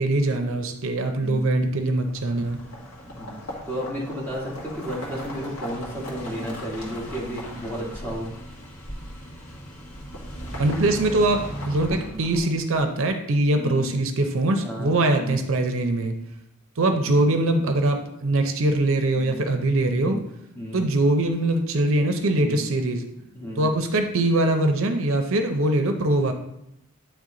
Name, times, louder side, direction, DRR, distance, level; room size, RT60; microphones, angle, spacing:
voice 1, 0.0-2.6 10.6-16.1 16.8-20.2 20.7-23.0 23.6-26.3, right 2 dB, 60° right, 6 dB, 0.6 m, -22 dB
voice 2, 1.0-1.4 3.0-3.3 3.7-8.3 11.9-12.2 13.5-13.8 14.6-15.4 16.9-17.3 19.9-20.2 20.5-20.8 22.3-22.6 23.3-23.7, equal, 10° left, -5 dB, 1.7 m, -33 dB
sound 1, 2.0-12.8, equal, 75° left, 1.8 m, -37 dB
9.0 x 3.3 x 3.8 m, 0.81 s
head